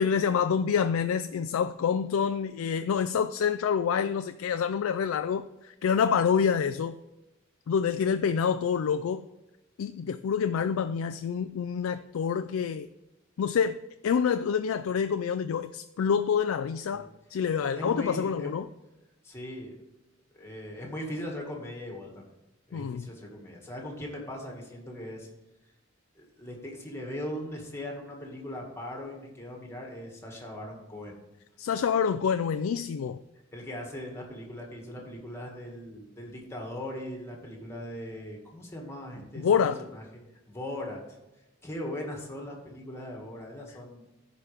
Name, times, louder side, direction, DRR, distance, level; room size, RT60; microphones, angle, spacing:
voice 1, 0.0-7.0 7.7-9.2 9.8-12.9 13.4-13.8 14.0-18.7 22.7-23.1 31.6-33.2 39.3-39.8, left 7 dB, 85° left, 10 dB, 0.3 m, -27 dB
voice 2, 17.5-18.6 19.2-19.7 20.3-22.3 22.7-25.3 26.2-31.2 33.5-40.0 40.5-41.2 41.6-44.0, left 1 dB, 15° left, 0 dB, 2.0 m, -39 dB
14.0 x 5.2 x 3.4 m, 0.98 s
head